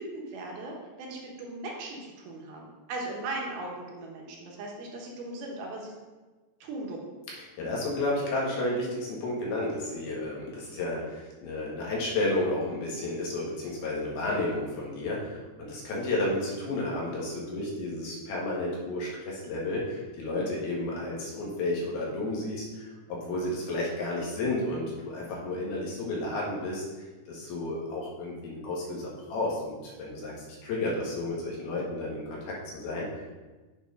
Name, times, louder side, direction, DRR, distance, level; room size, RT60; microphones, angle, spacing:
voice 1, 0.0-5.9 6.6-7.1, right 2 dB, 75° right, -1 dB, 3.0 m, -38 dB
voice 2, 7.6-33.1, left 2 dB, 75° left, -4 dB, 3.6 m, -32 dB
7.9 x 4.5 x 5.3 m, 1.2 s
omnidirectional pair, 4.5 m